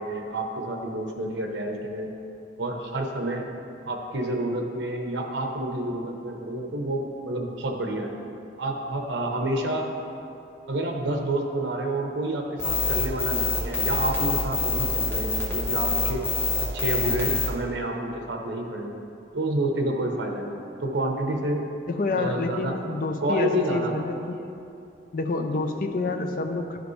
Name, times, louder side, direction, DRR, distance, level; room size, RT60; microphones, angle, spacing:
voice 1, 0.0-2.1 2.6-3.5 3.8-8.1 8.6-9.9 10.7-16.2 16.6-19.0 19.3-21.7 22.2-22.7 23.2-23.9 25.5-25.6, right 1 dB, 85° right, 2 dB, 0.9 m, -29 dB
sound 1, 12.6-17.5, left 3 dB, 10° left, 1.0 m, -25 dB
voice 2, 21.9-24.4 25.1-26.8, left 3 dB, 50° left, 5 dB, 0.5 m, -28 dB
11.5 x 5.1 x 3.2 m, 2.7 s
head